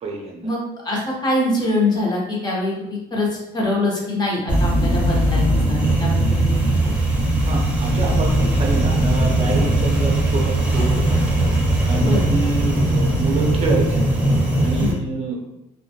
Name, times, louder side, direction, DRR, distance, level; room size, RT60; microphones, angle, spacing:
voice 1, 0.0-0.5 7.4-11.2 11.8-14.0 14.6-15.4, right 3 dB, 40° right, 0 dB, 0.6 m, -27 dB
voice 2, 0.8-3.3 3.5-6.9 12.0-12.2 14.8-15.0, left 2 dB, 25° left, -3 dB, 0.8 m, -24 dB
sound 1, 4.5-14.9, right 1 dB, 5° right, 0.8 m, -19 dB
2.2 x 2.1 x 2.8 m, 0.89 s
cardioid pair, 110°, 17 cm